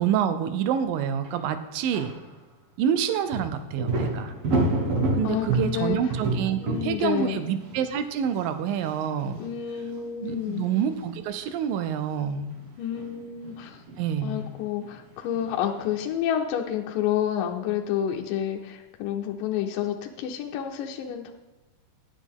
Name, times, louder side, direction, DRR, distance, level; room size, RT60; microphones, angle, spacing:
voice 1, 0.0-2.1 2.8-4.4 5.1-9.4 10.2-12.5 14.0-14.4, right 8 dB, 85° right, 10 dB, 2.3 m, -27 dB
sound 1, 1.2-1.3 1.9-2.2 3.3-9.5 9.8-9.9 10.4-10.6 10.8-11.1 11.4-11.6 12.5-15.1 15.3-16.0, right 2 dB, 55° right, 1.8 m, -30 dB
voice 2, 5.2-6.0 6.6-7.4 9.4-10.6 12.8-13.8 14.2-21.3, left 10 dB, 80° left, 2 dB, 2.3 m, -29 dB
9.8 x 9.1 x 3.6 m, 1.1 s
omnidirectional pair, 3.9 m